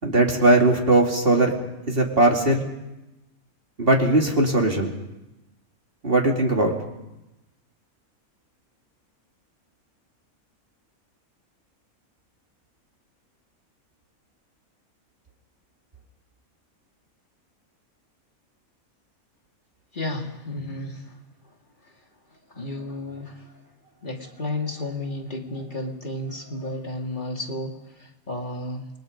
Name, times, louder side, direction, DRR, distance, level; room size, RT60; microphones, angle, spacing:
voice 1, 0.0-1.5 1.9-2.7 3.8-4.9 6.0-6.7, right 2 dB, 40° right, 1 dB, 2.9 m, -19 dB
voice 2, 19.9-21.2 21.8-23.7 24.0-28.9, left 1 dB, 35° left, 1 dB, 2.6 m, -33 dB
28.5 x 21.0 x 5.2 m, 0.97 s
omnidirectional pair, 1.5 m